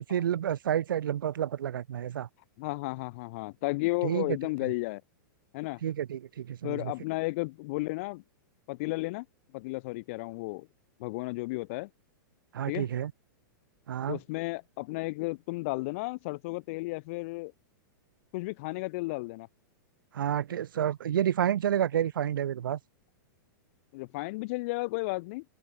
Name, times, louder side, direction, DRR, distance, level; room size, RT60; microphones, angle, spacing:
voice 1, 0.0-2.3 4.0-4.3 5.8-6.9 12.5-13.1 13.9-14.2 20.1-22.8, right 10 dB, 90° right, 1.3 m, -29 dB
voice 2, 2.6-5.0 5.5-5.8 6.6-8.2 8.7-9.3 9.5-10.7 11.0-11.9 12.7-12.9 14.1-17.5 18.3-19.5 23.9-25.4, left 24 dB, 40° left, 5.8 m, -33 dB
open air
supercardioid pair, 165°, 11 cm